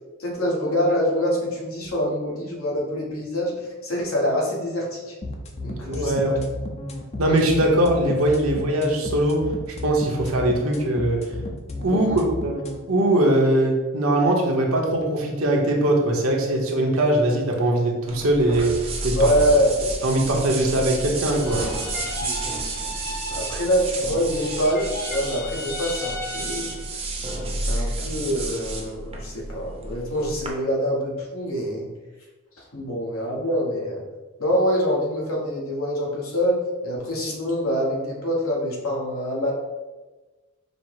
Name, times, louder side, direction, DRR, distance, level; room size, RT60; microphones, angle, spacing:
voice 1, 0.2-5.2 5.6-6.4 11.9-12.2 19.2-19.7 22.2-22.4 23.3-26.8 27.5-31.9 32.6-34.0 34.4-39.5, equal, 75° left, -2 dB, 1.2 m, -25 dB
sound 1, 5.2-12.8, left 2 dB, 30° left, 0.5 m, -33 dB
voice 2, 5.9-6.4 7.2-9.4 9.8-11.3 11.8-12.6 12.9-19.3 20.0-21.6, right 1 dB, 75° right, 0 dB, 0.9 m, -21 dB
sound 2, 18.1-30.5, right 2 dB, 30° right, 0.7 m, -31 dB
sound 3, 21.3-24.0 24.2-27.0, left 1 dB, 50° left, 1.0 m, -35 dB
5.2 x 2.0 x 4.6 m, 1.2 s
head